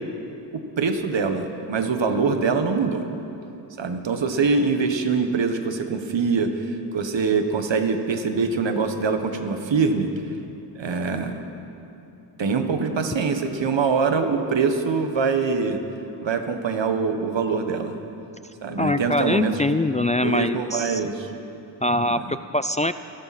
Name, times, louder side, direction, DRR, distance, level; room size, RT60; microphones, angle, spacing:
voice 1, 0.5-3.0 3.8-10.1 10.7-11.4 12.4-15.8 16.2-18.0 18.6-19.7 20.2-21.3 22.2-22.4, right 5 dB, 75° right, 6 dB, 1.4 m, -24 dB
voice 2, 18.8-21.0 21.8-22.9, left 1 dB, 15° left, 11 dB, 0.3 m, -23 dB
27.0 x 12.0 x 4.3 m, 2.9 s
cardioid pair, 60°, 44 cm